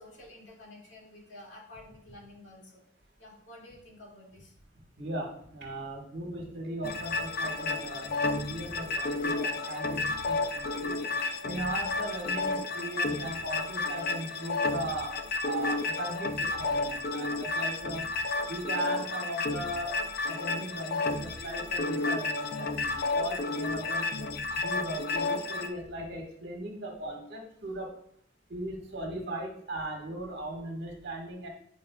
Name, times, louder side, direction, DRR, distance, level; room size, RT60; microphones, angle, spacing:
voice 1, 0.0-2.8 3.2-4.5 16.5-16.6 17.4-17.5 23.1-23.3 27.0-27.1, left 1 dB, 85° left, -3 dB, 2.3 m, -49 dB
voice 2, 5.0-10.9 11.4-15.1 15.4-18.0 18.5-20.0 20.3-24.1 24.5-27.9 28.5-31.5, right 1 dB, 65° right, 1 dB, 1.7 m, -38 dB
sound 1, 6.8-25.7, left 3 dB, 55° left, 0.5 m, -31 dB
9.7 x 5.2 x 2.3 m, 0.66 s
head